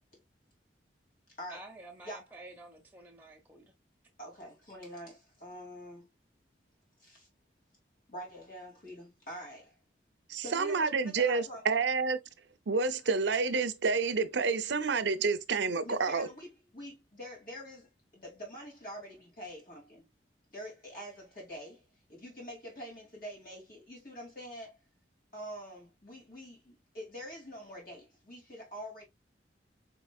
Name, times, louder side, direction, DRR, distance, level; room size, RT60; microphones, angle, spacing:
voice 1, 1.5-3.7, right 2 dB, 10° right, 0.9 m, -50 dB
voice 2, 4.2-6.1 7.0-7.3 8.1-9.7 10.3-11.8 15.8-20.0 20.5-21.8 22.1-24.8 25.3-29.0, equal, 50° left, 2.6 m, -45 dB
voice 3, 10.3-12.2 12.7-16.3, right 4 dB, 75° right, 0.6 m, -29 dB
4.7 x 4.2 x 2.3 m
head